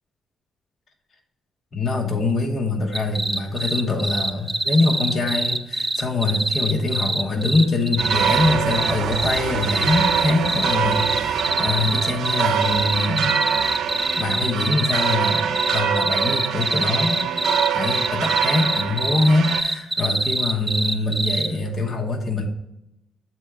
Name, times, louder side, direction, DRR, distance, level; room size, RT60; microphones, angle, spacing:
voice 1, 1.7-13.4 14.1-17.2 17.7-22.5, left 2 dB, 40° left, 2 dB, 1.0 m, -23 dB
sound 1, 2.9-21.5, right 2 dB, 10° right, 0.5 m, -24 dB
sound 2, 8.0-19.6, right 8 dB, 85° right, 0.5 m, -24 dB
7.6 x 4.5 x 3.5 m, 0.86 s
cardioid pair, 125°, 0 cm